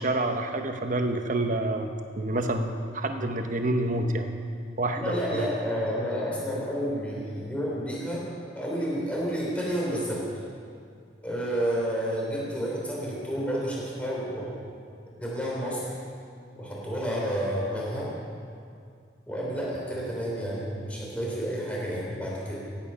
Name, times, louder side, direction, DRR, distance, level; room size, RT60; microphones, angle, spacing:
voice 1, 0.0-1.9 2.2-4.3 4.8-5.5, right 1 dB, 45° right, 5 dB, 1.0 m, -28 dB
voice 2, 4.9-8.2 8.6-10.3 11.2-14.6 15.2-15.9 16.6-18.1 19.3-22.6, equal, 5° left, -5 dB, 3.7 m, -30 dB
16.0 x 9.1 x 5.6 m, 2.3 s
head